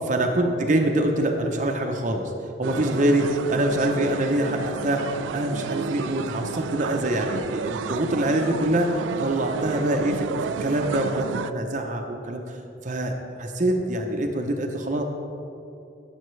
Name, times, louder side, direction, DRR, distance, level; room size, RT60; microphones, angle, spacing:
voice 1, 0.1-2.3 2.6-5.1 5.3-15.0, right 1 dB, 40° right, 3 dB, 0.7 m, -25 dB
sound 1, 2.6-11.5, right 6 dB, 85° right, 0.3 m, -32 dB
14.0 x 7.0 x 3.2 m, 2.8 s
head